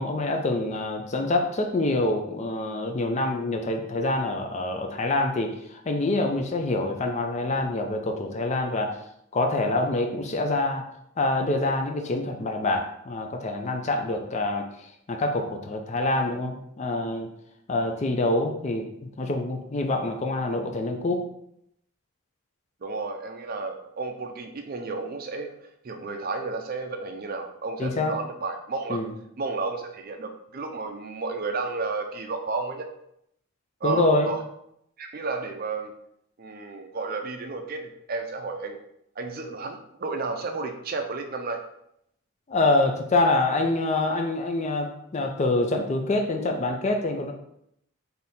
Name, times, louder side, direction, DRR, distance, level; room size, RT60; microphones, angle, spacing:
voice 1, 0.0-9.0 9.3-10.8 11.2-17.3 17.7-21.2 27.8-28.1 28.9-29.1 33.8-34.3 42.5-47.3, left 2 dB, 30° left, 4 dB, 0.4 m, -26 dB
voice 2, 22.8-25.5 25.8-29.0 29.4-32.9 33.8-34.4 35.0-35.9 36.4-38.8 39.2-41.6, right 3 dB, 40° right, 5 dB, 0.4 m, -32 dB
3.5 x 2.7 x 4.1 m, 0.75 s
head